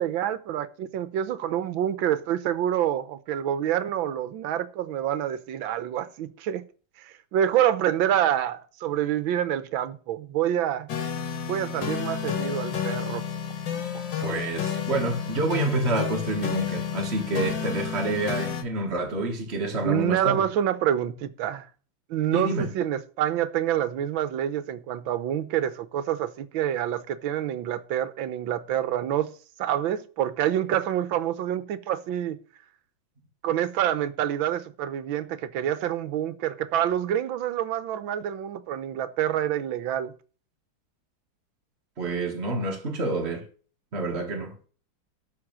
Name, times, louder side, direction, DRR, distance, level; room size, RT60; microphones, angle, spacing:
voice 1, 0.0-6.6 7.0-10.9 11.5-13.2 13.7-13.8 14.1-14.2 19.8-21.6 22.1-29.3 29.6-32.4 33.4-40.1, right 10 dB, 80° right, 1.7 m, -27 dB
sound 1, 10.9-18.6, left 7 dB, 70° left, 2.2 m, -31 dB
voice 2, 14.2-20.5 22.3-22.7 42.0-43.5 43.9-44.5, right 2 dB, 35° right, 1.8 m, -28 dB
12.5 x 4.4 x 7.4 m
omnidirectional pair, 2.1 m